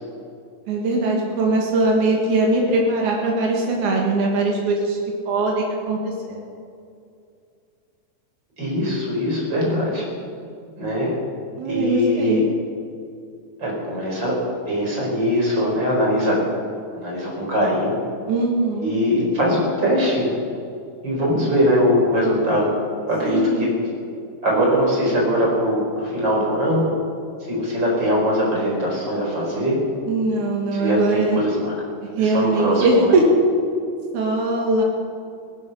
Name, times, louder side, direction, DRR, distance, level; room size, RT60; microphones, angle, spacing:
voice 1, 0.7-5.0 5.3-6.4 11.6-12.4 18.3-18.9 23.2-23.7 30.1-31.4 32.1-33.2 34.1-34.8, right 2 dB, 85° right, -1 dB, 3.3 m, -21 dB
voice 2, 8.6-10.0 10.8-11.1 11.6-12.4 13.6-14.3 14.7-16.4 16.9-17.9 18.8-20.4 21.0-22.7 23.1-23.9 24.4-26.8 27.5-29.8 30.7-31.7 32.2-33.1, equal, 35° right, -3 dB, 5.4 m, -21 dB
19.0 x 12.5 x 5.6 m, 2.4 s
omnidirectional pair, 3.4 m